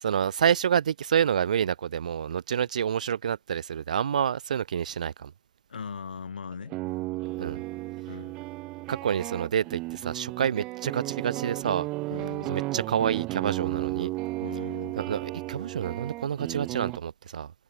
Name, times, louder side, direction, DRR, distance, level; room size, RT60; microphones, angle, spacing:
voice 1, 0.0-5.3 7.4-7.6 8.9-11.9 12.5-14.1 15.0-17.5, right 8 dB, 50° right, 1.0 m, -28 dB
voice 2, 5.7-6.8 8.0-8.3 12.1-12.6 14.4-15.0, left 6 dB, 65° left, 4.1 m, -39 dB
sound 1, 6.5-17.0, right 20 dB, 15° right, 0.5 m, -34 dB
hypercardioid pair, 155°, 5 cm